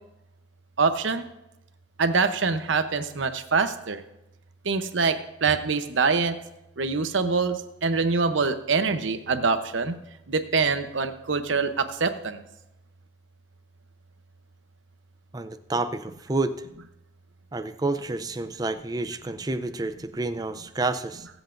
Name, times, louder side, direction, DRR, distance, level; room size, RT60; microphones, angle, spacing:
voice 1, 0.8-1.3 2.0-4.0 4.6-6.4 6.8-9.9 10.3-12.4, right 4 dB, 75° right, 9 dB, 0.8 m, -24 dB
voice 2, 15.3-16.5 17.5-21.3, right 2 dB, 20° right, 10 dB, 0.5 m, -29 dB
22.5 x 8.0 x 2.6 m, 0.91 s
head